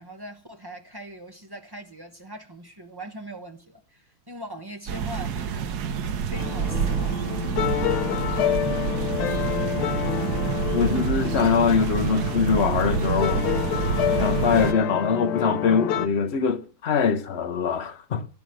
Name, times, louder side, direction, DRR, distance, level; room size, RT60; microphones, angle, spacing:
voice 1, 0.0-7.2, right 1 dB, 40° right, 0.3 m, -41 dB
sound 1, 4.9-14.7, right 7 dB, 60° right, 1.2 m, -27 dB
sound 2, 6.3-16.1, left 9 dB, 80° left, 1.7 m, -28 dB
voice 2, 10.7-13.5 14.2-18.3, left 6 dB, 65° left, 0.6 m, -23 dB
11.0 x 10.0 x 7.7 m
omnidirectional pair, 2.3 m